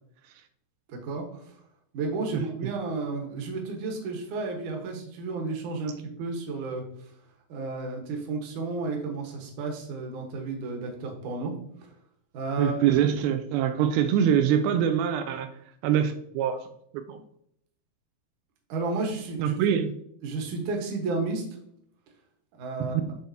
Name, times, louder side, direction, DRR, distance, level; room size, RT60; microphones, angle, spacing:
voice 1, 0.9-1.4 1.9-6.8 7.5-11.5 11.8-11.9 12.3-12.9 18.7-19.5 20.2-21.4 22.6-23.0, right 3 dB, 65° right, 1 dB, 2.4 m, -32 dB
voice 2, 12.6-15.5 15.8-16.6 16.9-17.2 19.4-19.9 22.8-23.0, right 9 dB, 85° right, 8 dB, 2.4 m, -24 dB
10.5 x 3.5 x 2.7 m, 0.71 s
omnidirectional pair, 4.2 m